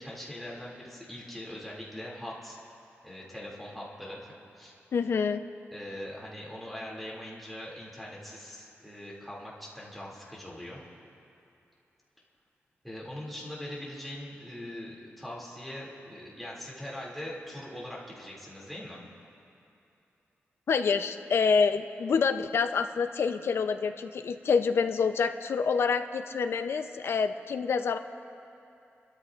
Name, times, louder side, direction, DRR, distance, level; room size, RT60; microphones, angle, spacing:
voice 1, 0.0-2.6 3.0-4.7 5.7-10.8 12.8-19.0, left 1 dB, ahead, -5 dB, 2.5 m, -41 dB
voice 2, 4.9-5.4 20.7-28.0, left 5 dB, 65° left, 8 dB, 0.5 m, -27 dB
28.0 x 13.0 x 2.5 m, 2.7 s
wide cardioid pair, 150°, 4 cm